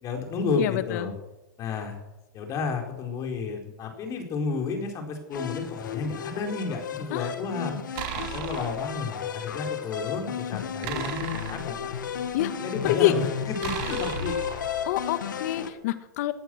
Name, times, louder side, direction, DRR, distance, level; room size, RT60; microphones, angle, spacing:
voice 1, 0.0-1.1 1.6-2.0 2.3-7.8 8.1-11.9 12.6-13.2 13.6-14.4, left 4 dB, 35° left, 3 dB, 4.4 m, -31 dB
voice 2, 0.6-1.1 7.1-7.3 12.3-12.5 12.8-13.1 14.8-16.3, left 15 dB, 60° left, 12 dB, 1.4 m, -26 dB
sound 1, 5.3-15.7, left 8 dB, 85° left, 1.8 m, -34 dB
sound 2, 8.0-8.9 10.8-12.3 13.6-15.1, right 10 dB, 45° right, 2.7 m, -36 dB
18.0 x 11.5 x 6.3 m, 0.99 s
hypercardioid pair, 130°, 10 cm